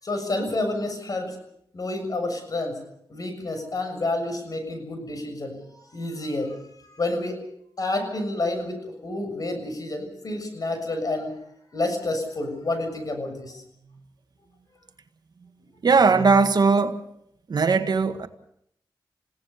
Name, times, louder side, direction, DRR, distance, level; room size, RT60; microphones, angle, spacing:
voice 1, 0.0-1.4 1.7-2.8 3.1-6.6 6.9-7.4 7.8-11.4 11.7-13.6, left 2 dB, 50° left, 7.0 m, -29 dB
voice 2, 15.8-17.0 17.5-18.3, right 4 dB, 60° right, 1.6 m, -19 dB
29.0 x 17.5 x 6.9 m
cardioid pair, 75°, 8 cm